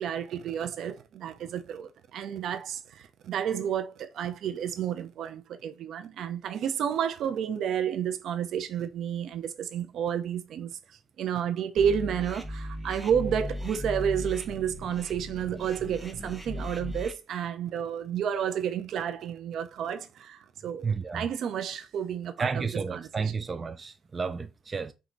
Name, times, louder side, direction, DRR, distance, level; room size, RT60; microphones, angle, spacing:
voice 1, 0.0-10.7 11.2-23.1, right 8 dB, 75° right, 0.7 m, -31 dB
sound 1, 11.8-17.1, left 1 dB, 5° right, 1.2 m, -37 dB
voice 2, 20.8-21.2 22.4-24.9, right 5 dB, 30° right, 0.5 m, -31 dB
4.7 x 2.8 x 3.8 m
cardioid pair, 90°, 0 cm